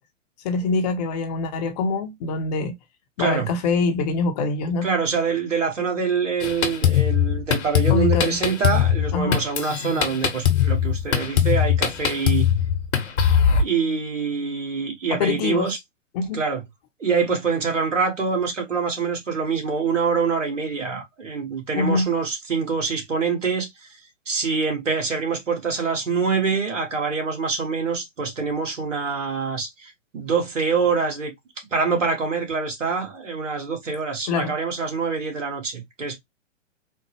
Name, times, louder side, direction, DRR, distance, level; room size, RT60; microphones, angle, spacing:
voice 1, 0.4-2.8 3.2-4.9 7.9-8.4 9.1-9.4 15.1-15.7 16.1-16.4 21.7-22.1 34.3-34.5, left 3 dB, 35° left, 0.7 m, -24 dB
voice 2, 4.8-12.5 13.6-15.8 16.3-16.6 17.0-23.7 24.3-31.3 31.7-36.2, right 5 dB, 75° right, 1.8 m, -25 dB
Drum kit, 6.4-13.6, left 9 dB, 60° left, 1.2 m, -21 dB
4.3 x 2.0 x 3.1 m
figure-of-eight pair, 120°, 38 cm